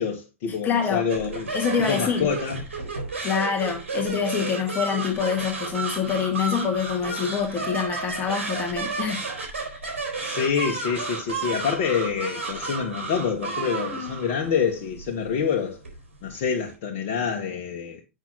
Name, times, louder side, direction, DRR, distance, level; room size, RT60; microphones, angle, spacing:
voice 1, 0.0-1.5 1.9-2.6 10.2-15.8 16.2-18.0, left 6 dB, 55° left, 1.5 m, -26 dB
voice 2, 0.6-1.1 1.5-2.3 3.2-9.2, left 7 dB, 25° left, 1.8 m, -26 dB
sound 1, 1.1-16.7, right 3 dB, 75° right, 4.0 m, -32 dB
8.0 x 6.1 x 4.0 m
hypercardioid pair, 105°, 7 cm